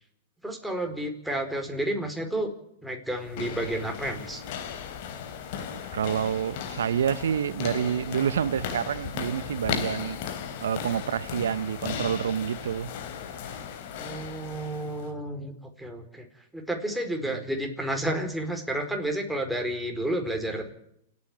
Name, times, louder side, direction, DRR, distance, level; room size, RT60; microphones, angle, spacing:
voice 1, 0.4-2.5 2.8-4.4 13.9-15.5 15.8-16.3 16.5-20.7, right 1 dB, ahead, 4.6 m, -31 dB
sound 1, 3.2-15.1, left 7 dB, 55° left, 3.7 m, -36 dB
voice 2, 5.9-10.2 10.6-12.9 17.3-17.4, right 8 dB, 80° right, 0.8 m, -28 dB
29.0 x 9.7 x 9.9 m
hypercardioid pair, 120°, 0 cm